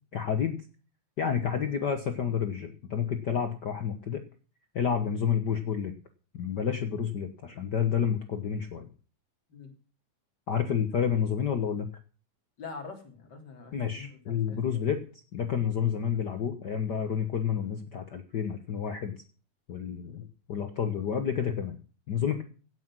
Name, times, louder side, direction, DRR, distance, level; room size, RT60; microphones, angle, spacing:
voice 1, 0.1-0.6 1.2-4.2 4.7-5.9 6.3-8.9 10.5-11.9 13.7-15.0 15.3-19.1 19.7-21.8 22.1-22.4, left 7 dB, 75° left, 8 dB, 0.9 m, -29 dB
voice 2, 12.6-14.9, left 4 dB, 30° left, 3 dB, 3.5 m, -45 dB
17.0 x 8.2 x 6.2 m, 0.38 s
omnidirectional pair, 3.7 m